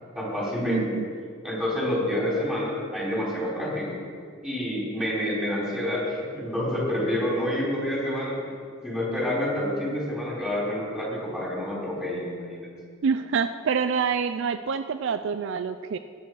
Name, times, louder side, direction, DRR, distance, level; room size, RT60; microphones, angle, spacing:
voice 1, 0.1-0.8 1.4-4.0 4.4-8.4 8.8-12.7, left 1 dB, 5° right, -6 dB, 3.8 m, -28 dB
voice 2, 0.7-1.0 13.0-16.0, right 6 dB, 60° right, 11 dB, 0.4 m, -26 dB
17.0 x 8.4 x 4.7 m, 2.1 s
head